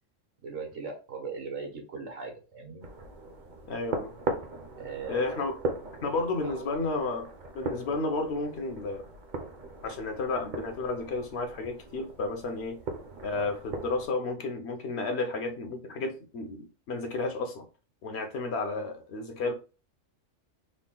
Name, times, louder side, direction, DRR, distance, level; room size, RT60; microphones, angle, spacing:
voice 1, 0.4-2.8 4.8-5.5 6.4-6.7 13.3-13.5, right 4 dB, 75° right, 1.4 m, -39 dB
sound 1, 2.8-14.1, right 3 dB, 45° right, 0.7 m, -39 dB
voice 2, 3.7-4.2 5.1-5.6 6.0-9.1 9.8-12.8 13.2-17.7 18.0-19.5, left 3 dB, 60° left, 0.9 m, -32 dB
3.6 x 2.2 x 3.7 m
omnidirectional pair, 1.4 m